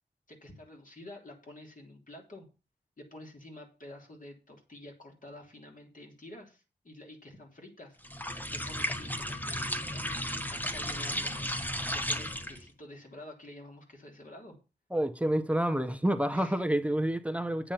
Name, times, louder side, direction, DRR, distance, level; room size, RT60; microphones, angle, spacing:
voice 1, 0.3-2.5 3.0-10.0 10.5-11.5 11.9-14.6 16.3-16.7, left 1 dB, 45° left, 3.5 m, -49 dB
sound 1, 8.0-12.7, equal, 10° left, 1.0 m, -34 dB
voice 2, 14.9-17.7, right 1 dB, 5° right, 0.7 m, -28 dB
9.1 x 8.6 x 5.6 m
wide cardioid pair, 115°, 18 cm